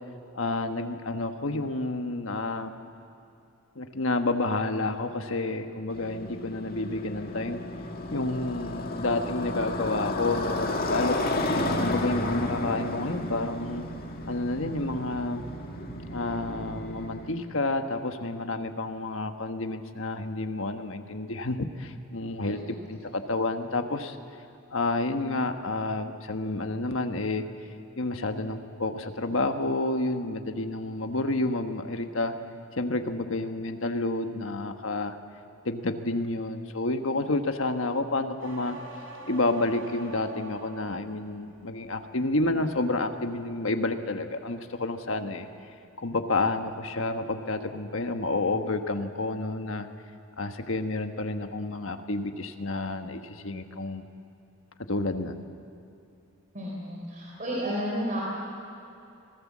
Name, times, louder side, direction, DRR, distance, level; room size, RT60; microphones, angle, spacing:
voice 1, 0.3-2.7 3.7-7.6 8.1-11.2 11.7-13.9 14.2-15.5 16.1-22.6 22.9-24.2 24.7-27.4 28.0-32.3 32.8-35.2 35.6-38.8 39.3-45.5 46.0-49.9 50.4-54.1 54.9-55.4, left 2 dB, 70° left, 6 dB, 1.4 m, -30 dB
Motorcycle, 5.9-17.3, left 2 dB, 45° left, 2.1 m, -32 dB
voice 2, 22.4-22.7 56.5-58.2, equal, 40° right, -4 dB, 4.0 m, -32 dB
sound 1, 38.4-41.1 41.5-42.1, right 1 dB, 70° right, 3.8 m, -44 dB
26.5 x 18.0 x 7.5 m, 2.7 s
head